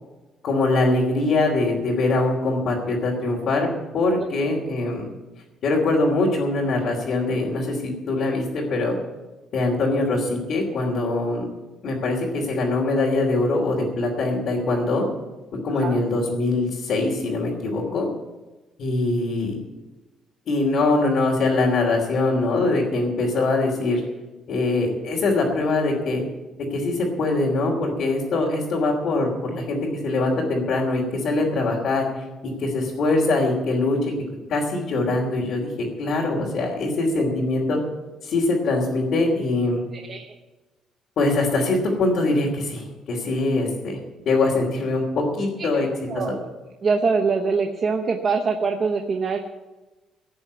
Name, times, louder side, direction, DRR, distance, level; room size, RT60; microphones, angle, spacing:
voice 1, 0.4-3.7 3.9-5.1 5.6-8.9 9.5-11.5 11.8-15.0 15.6-18.1 18.8-19.6 20.5-24.0 24.5-26.2 26.7-32.2 32.6-34.1 34.5-35.7 36.0-37.8 38.2-39.8 41.2-44.0 44.2-45.9 46.1-46.2, left 2 dB, 50° left, -5 dB, 3.0 m, -23 dB
voice 2, 46.1-46.5 46.8-49.4, right 4 dB, 30° right, 4 dB, 0.9 m, -23 dB
17.0 x 6.9 x 8.4 m, 1.2 s
cardioid pair, 160°, 0 cm